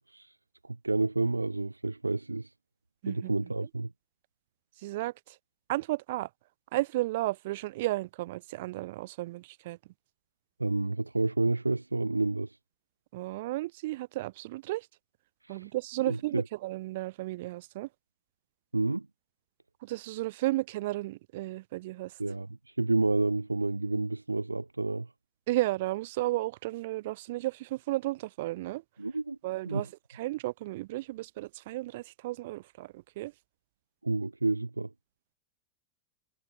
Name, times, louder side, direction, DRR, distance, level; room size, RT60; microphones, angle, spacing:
voice 1, 0.6-2.5 3.1-3.9 10.6-12.6 15.4-15.7 16.0-16.5 18.7-19.1 22.2-25.1 29.0-29.4 29.6-29.9 34.0-34.9, right 2 dB, 80° right, 0.5 m, -30 dB
voice 2, 4.8-5.1 5.7-6.3 6.7-9.8 13.1-14.9 15.5-17.9 19.8-22.1 25.5-28.8 29.4-29.9 30.1-33.3, right 18 dB, 50° right, 2.0 m, -33 dB
figure-of-eight pair, 90°, 0 cm